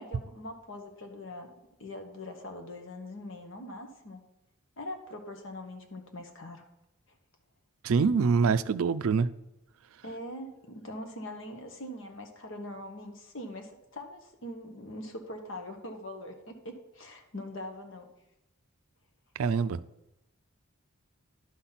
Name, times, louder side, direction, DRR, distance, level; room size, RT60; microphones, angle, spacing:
voice 1, 0.0-1.5 1.8-4.2 4.8-6.6 10.0-18.1, left 1 dB, 55° left, 1.2 m, -42 dB
voice 2, 7.8-9.3 19.4-19.8, right 5 dB, 70° right, 0.4 m, -25 dB
11.5 x 4.1 x 5.8 m
head